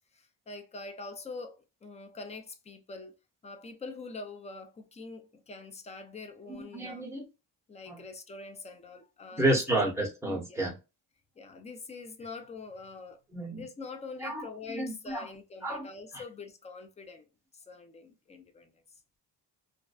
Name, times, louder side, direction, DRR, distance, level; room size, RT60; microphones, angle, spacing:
voice 1, 0.1-3.1 3.4-7.1 7.7-9.8 10.4-10.6 11.4-13.2 13.5-17.3 17.5-18.8, left 3 dB, 15° left, 0.4 m, -44 dB
voice 2, 6.7-7.2 7.9-8.0 9.4-10.7 13.3-13.6 14.2-14.5 14.7-15.3 15.6-15.9 16.1-16.2, right 1 dB, 5° right, 1.0 m, -30 dB
2.6 x 2.2 x 2.3 m
cardioid pair, 120°, 43 cm